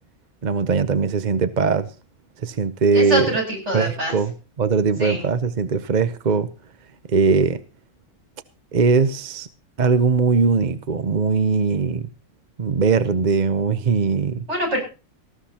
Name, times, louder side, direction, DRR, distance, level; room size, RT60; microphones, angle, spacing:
voice 1, 0.4-1.9 2.4-3.3 3.7-4.3 4.6-6.5 7.1-7.6 8.7-9.5 9.8-12.0 12.6-14.5, right 5 dB, 40° right, 0.8 m, -20 dB
voice 2, 2.9-4.1 5.0-5.2 14.5-14.8, right 1 dB, 60° right, 8.3 m, -24 dB
19.0 x 15.0 x 2.9 m
omnidirectional pair, 1.4 m